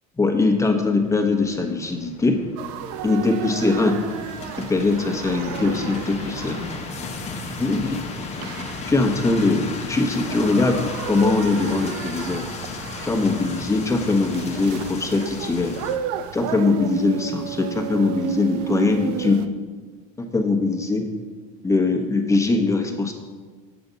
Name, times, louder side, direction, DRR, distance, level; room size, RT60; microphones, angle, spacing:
voice 1, 0.2-2.4 3.0-4.0 4.6-6.7 7.6-7.8 8.8-12.5 13.0-15.7 16.3-19.4 20.2-21.1 21.6-23.1, left 3 dB, 15° left, 2 dB, 1.2 m, -21 dB
sound 1, 0.8-16.0, left 4 dB, 35° left, 1.0 m, -35 dB
sound 2, 2.6-19.5, right 11 dB, 70° right, 0.5 m, -33 dB
7.9 x 7.0 x 4.0 m, 1.5 s
supercardioid pair, 100°, 20 cm